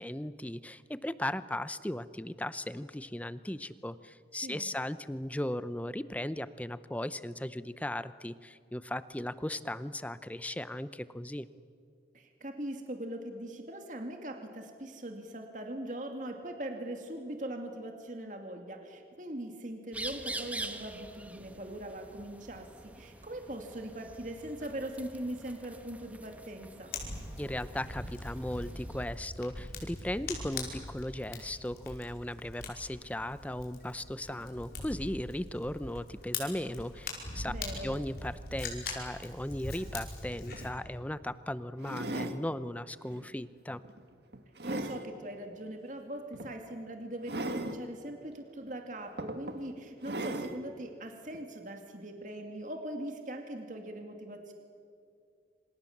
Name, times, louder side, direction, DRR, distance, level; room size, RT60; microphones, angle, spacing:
voice 1, 0.0-11.5 27.4-37.5 37.8-43.8, left 1 dB, 10° left, 14 dB, 0.6 m, -37 dB
voice 2, 4.3-4.7 12.1-26.9 37.5-37.9 44.6-54.5, right 1 dB, 45° right, 4 dB, 2.5 m, -41 dB
sound 1, 19.9-29.1, right 2 dB, 10° right, 1.1 m, -45 dB
Fire, 26.9-40.7, left 3 dB, 55° left, 5.3 m, -42 dB
sound 2, 40.2-40.3 40.5-40.7 41.8-42.4 43.1-43.3 43.8-45.0 46.3-46.5 47.2-47.8 48.6-48.7 49.2-49.6 50.0-50.6 51.3-51.4, right 1 dB, 70° right, 1.7 m, -37 dB
27.0 x 27.0 x 7.3 m, 2.4 s
head